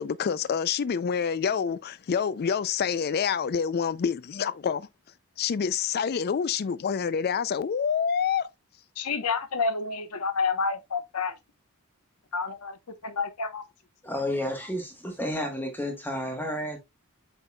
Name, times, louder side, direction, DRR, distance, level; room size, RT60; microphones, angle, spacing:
voice 1, 0.0-4.9 5.4-8.5, left 7 dB, 45° left, 0.4 m, -27 dB
voice 2, 9.0-11.3 12.3-12.8 13.0-13.6, left 4 dB, 80° left, 1.0 m, -29 dB
voice 3, 14.0-16.8, left 1 dB, 10° left, 1.2 m, -31 dB
8.1 x 5.3 x 2.2 m
head